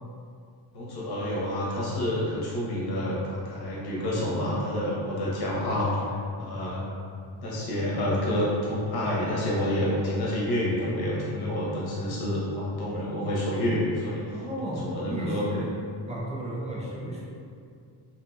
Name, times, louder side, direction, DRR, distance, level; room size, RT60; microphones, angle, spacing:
voice 1, 0.7-6.0 6.4-6.9 7.4-14.2 14.6-15.5 16.8-16.9, left 1 dB, 50° left, -6 dB, 0.8 m, -28 dB
voice 2, 14.3-15.8 16.1-17.2, right 1 dB, 15° right, -5 dB, 0.3 m, -34 dB
2.7 x 2.6 x 2.2 m, 2.3 s
cardioid pair, 140°, 48 cm